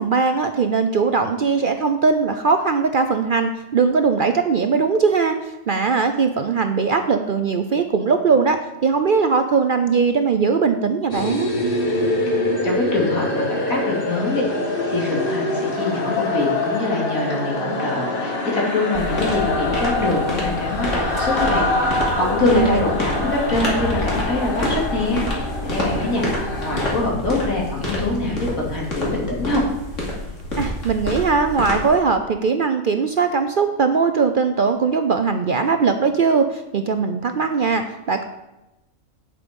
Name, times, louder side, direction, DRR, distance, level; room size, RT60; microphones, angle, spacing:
voice 1, 0.0-5.4 5.7-11.5 22.4-22.8 25.9-26.0 26.7-26.8 30.6-38.2, right 5 dB, 55° right, 8 dB, 0.6 m, -20 dB
sound 1, 11.1-27.0, left 2 dB, 40° left, 1.7 m, -25 dB
voice 2, 12.6-14.4 14.9-26.2 26.6-29.6, left 2 dB, 85° left, -3 dB, 3.3 m, -24 dB
sound 2, 18.9-31.9, left 1 dB, 65° left, 3.0 m, -28 dB
9.2 x 8.4 x 5.3 m, 0.98 s
omnidirectional pair, 1.4 m